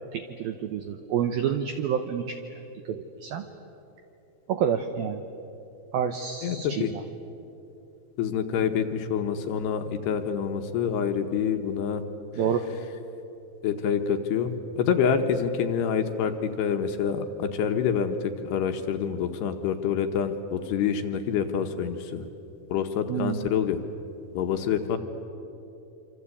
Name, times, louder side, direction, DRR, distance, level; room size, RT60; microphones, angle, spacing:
voice 1, 0.1-2.4 2.9-3.5 4.5-5.2 5.9-7.0 12.4-12.7 23.1-23.5, right 8 dB, 85° right, 8 dB, 2.1 m, -28 dB
voice 2, 6.4-6.9 8.2-12.0 13.6-22.2 22.7-23.8 24.3-25.0, left 7 dB, 70° left, 6 dB, 2.8 m, -27 dB
26.5 x 26.0 x 8.5 m, 2.9 s
omnidirectional pair, 5.6 m